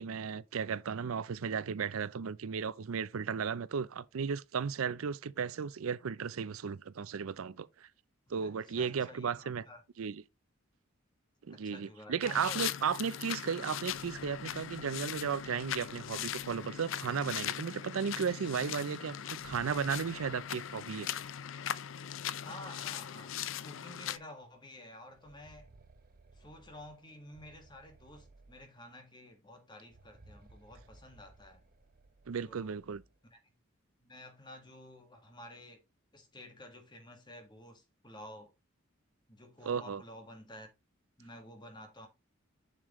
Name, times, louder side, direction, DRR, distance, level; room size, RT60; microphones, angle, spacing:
voice 1, 0.0-7.9 8.3-9.6 10.0-10.2 11.4-21.1 32.3-33.0 39.6-40.0, right 6 dB, 85° right, 0.5 m, -35 dB
voice 2, 8.3-9.8 11.5-12.6 22.4-23.4 23.6-25.7 26.3-31.6 32.4-32.8 33.2-33.5 34.0-35.8 36.1-38.5 39.3-40.7 41.2-42.1, left 1 dB, 20° left, 1.7 m, -51 dB
sound 1, 12.2-24.2, left 10 dB, 65° left, 0.5 m, -40 dB
sound 2, 13.7-17.3 19.1-21.3 21.6-21.7 22.6-22.7 23.2-23.3 25.0-29.1 29.8-33.2, right 2 dB, 45° right, 0.7 m, -62 dB
7.3 x 6.6 x 3.1 m
head